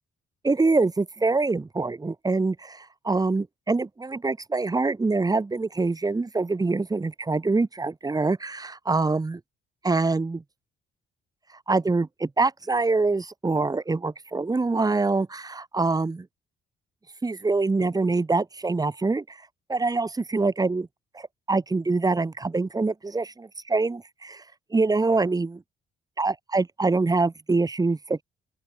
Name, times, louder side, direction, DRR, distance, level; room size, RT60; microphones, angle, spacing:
voice 1, 0.4-9.4 9.8-10.4 11.7-16.3 17.2-19.4 19.7-20.9 21.1-24.4 24.7-25.6 26.2-28.2, right 3 dB, 20° right, 1.2 m, -25 dB
open air
cardioid pair, 90°, 20 cm